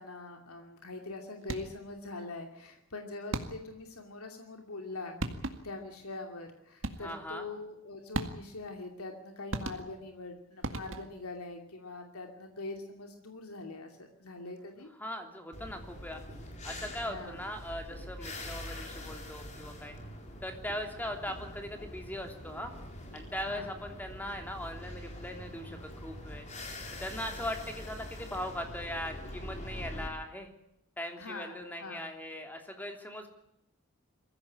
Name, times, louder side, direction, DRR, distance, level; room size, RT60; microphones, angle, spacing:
voice 1, 0.0-14.9 17.0-17.4 23.4-23.7 31.2-32.1, left 2 dB, 85° left, 4 dB, 2.7 m, -43 dB
sound 1, 1.4-1.9 3.3-3.8 4.9-5.0 5.2-5.8 6.8-7.3 8.1-8.7 9.5-10.2 10.6-11.3, right 2 dB, 60° right, 2.0 m, -38 dB
voice 2, 7.0-7.5 15.0-16.2 16.6-20.0 20.4-22.7 23.1-26.5 27.0-30.5 31.0-33.3, left 1 dB, 10° left, 4 dB, 3.1 m, -40 dB
sound 2, 15.5-30.1, left 1 dB, 30° left, 4.1 m, -44 dB
22.5 x 15.5 x 8.6 m, 0.83 s
head